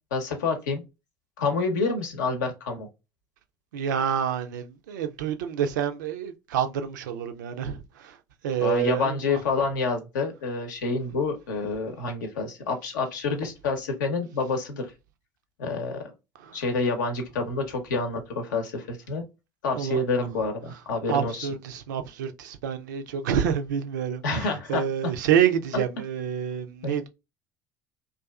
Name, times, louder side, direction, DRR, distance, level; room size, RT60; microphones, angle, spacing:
voice 1, 0.1-0.8 1.4-2.9 8.6-14.9 15.6-16.1 16.5-19.2 19.6-21.5 24.2-25.1 26.8-27.0, left 3 dB, 80° left, 0.8 m, -28 dB
voice 2, 3.7-8.2 8.4-9.4 16.4-16.5 19.8-20.0 21.1-27.1, right 8 dB, 80° right, 0.4 m, -28 dB
2.5 x 2.4 x 2.3 m
hypercardioid pair, 65°, 10 cm